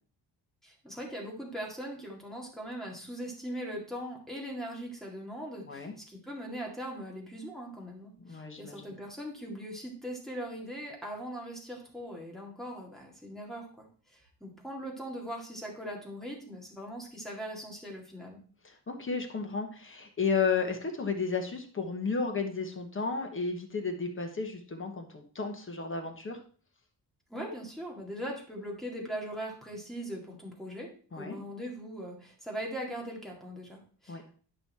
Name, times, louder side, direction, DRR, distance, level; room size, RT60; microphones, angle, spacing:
voice 1, 0.6-18.4 27.3-34.3, equal, ahead, -2 dB, 2.2 m, -40 dB
voice 2, 8.2-8.9 18.6-26.4 31.1-31.4 34.1-34.2, left 5 dB, 30° left, 4 dB, 1.3 m, -33 dB
11.5 x 5.5 x 4.3 m, 0.41 s
wide cardioid pair, 180°, 41 cm